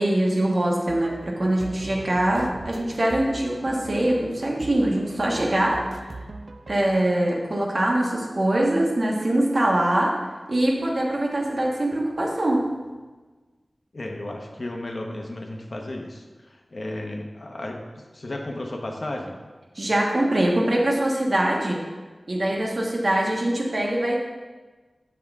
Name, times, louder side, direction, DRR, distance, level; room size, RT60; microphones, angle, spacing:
voice 1, 0.0-5.9 6.7-10.2 10.5-12.7 19.7-21.8 22.3-24.2, right 1 dB, 55° right, -1 dB, 1.3 m, -23 dB
sound 1, 0.9-6.8, right 2 dB, 70° right, 0.4 m, -40 dB
voice 2, 13.9-19.4, left 1 dB, 60° left, 1 dB, 1.0 m, -34 dB
7.4 x 6.0 x 3.6 m, 1.3 s
wide cardioid pair, 70°, 0 cm